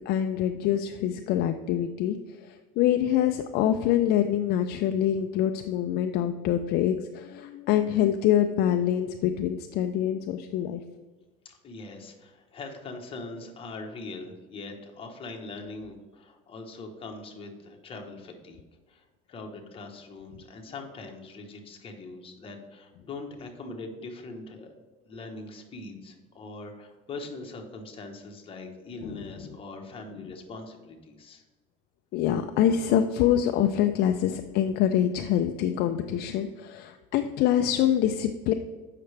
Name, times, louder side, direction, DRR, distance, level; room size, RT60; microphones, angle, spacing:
voice 1, 0.1-10.8 29.0-29.2 32.1-38.5, left 10 dB, 55° left, 7 dB, 0.4 m, -25 dB
voice 2, 11.4-18.6 18.9-24.7 25.1-31.4, left 3 dB, 25° left, 2 dB, 1.1 m, -42 dB
7.9 x 5.7 x 3.3 m, 1.3 s
cardioid pair, 140°, 20 cm